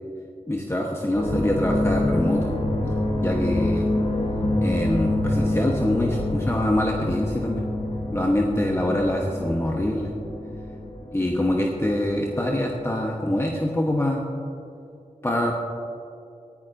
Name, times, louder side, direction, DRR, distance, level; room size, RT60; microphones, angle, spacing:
voice 1, 0.5-2.5 2.8-2.9 3.2-3.9 4.6-7.6 8.1-10.1 11.1-14.2 15.2-15.5, left 1 dB, 20° left, -1 dB, 1.2 m, -24 dB
sound 1, 1.1-13.3 13.5-14.0, left 1 dB, 45° left, 1.9 m, -27 dB
18.0 x 11.0 x 2.7 m, 2.6 s
cardioid pair, 45°, 14 cm